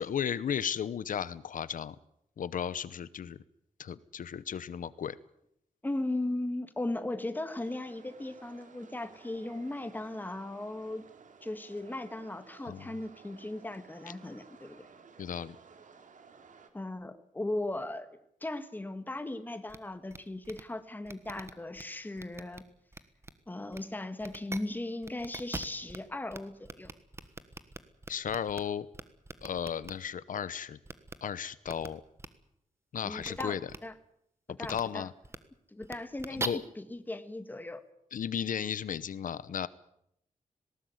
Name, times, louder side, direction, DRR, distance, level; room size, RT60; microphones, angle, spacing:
voice 1, 0.0-2.0 2.4-3.4 3.8-5.2 12.6-12.9 15.2-15.6 28.1-28.9 29.4-30.8 31.2-32.0 32.9-33.7 34.5-35.1 36.3-36.6 38.1-39.7, left 8 dB, 85° left, 17 dB, 0.8 m, -34 dB
voice 2, 5.8-11.0 11.4-14.8 16.7-18.1 18.4-22.6 23.5-26.9 33.0-33.9 34.6-35.1 35.7-36.5 36.8-37.8, left 2 dB, 15° left, 9 dB, 1.7 m, -37 dB
sound 1, 7.5-16.7, right 5 dB, 75° right, 2.7 m, -56 dB
sound 2, 19.7-19.8 20.1-20.2 20.4-20.6 21.1-21.8 22.2-22.6 22.9-23.3 23.7-23.8 24.2-24.6 25.0-26.0 26.3-26.4 26.6-28.6 28.9-29.9 30.9-31.1 31.7-31.9 32.2-32.3 33.2-33.4 33.7-33.8 34.6-34.8 35.2-35.4 35.8-36.5, right 2 dB, 20° right, 1.4 m, -41 dB
19.5 x 18.5 x 9.4 m, 0.75 s
wide cardioid pair, 170°, 13 cm